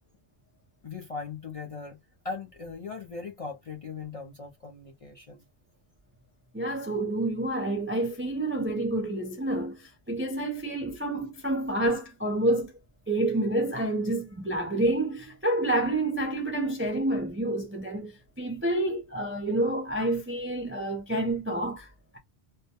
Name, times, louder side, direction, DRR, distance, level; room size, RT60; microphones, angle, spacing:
voice 1, 0.8-2.0 2.2-5.4, left 4 dB, 45° left, 0.4 m, -39 dB
voice 2, 6.5-12.7 13.1-21.9, right 1 dB, 20° right, 0.3 m, -28 dB
2.2 x 2.1 x 2.8 m
omnidirectional pair, 1.2 m